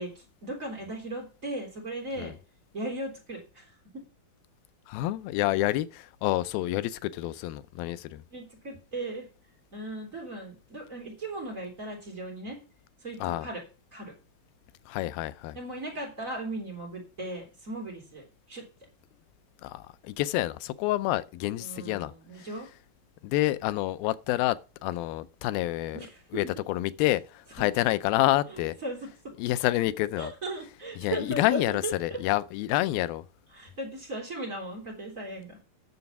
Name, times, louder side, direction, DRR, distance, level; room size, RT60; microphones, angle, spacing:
voice 1, 0.0-2.3 2.7-4.0 8.3-9.2 9.7-12.6 13.0-13.6 13.9-14.1 15.5-18.6 21.6-22.7 25.9-26.5 27.6-27.7 28.5-29.3 30.2-32.2 33.5-35.6, right 1 dB, 20° right, 3.5 m, -37 dB
voice 2, 4.9-8.2 13.2-13.5 14.9-15.6 19.6-22.5 23.2-26.0 26.3-28.8 29.4-30.3 31.0-33.2, left 16 dB, 85° left, 2.4 m, -28 dB
9.5 x 6.9 x 5.9 m
omnidirectional pair, 4.1 m